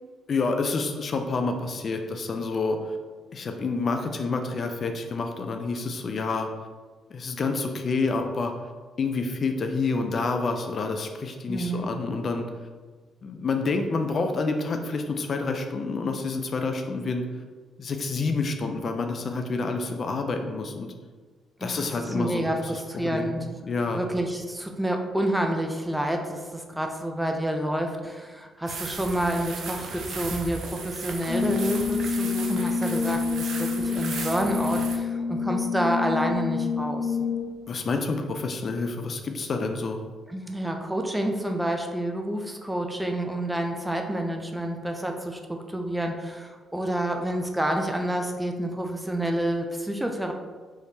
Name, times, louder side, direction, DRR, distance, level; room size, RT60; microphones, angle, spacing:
voice 1, 0.3-3.0 3.3-6.5 7.1-8.5 9.0-12.5 13.2-17.2 17.8-20.9 21.6-23.3 23.6-24.0 37.7-40.0, left 3 dB, 50° left, 5 dB, 0.4 m, -28 dB
voice 2, 11.5-11.9 21.6-23.4 23.9-37.2 40.3-50.3, right 1 dB, 5° right, 3 dB, 0.5 m, -29 dB
sound 1, 28.7-35.0, right 4 dB, 70° right, 0.6 m, -36 dB
Brass instrument, 31.3-37.7, left 5 dB, 80° left, 0.7 m, -28 dB
4.7 x 3.3 x 2.7 m, 1.4 s
cardioid pair, 90°, 0 cm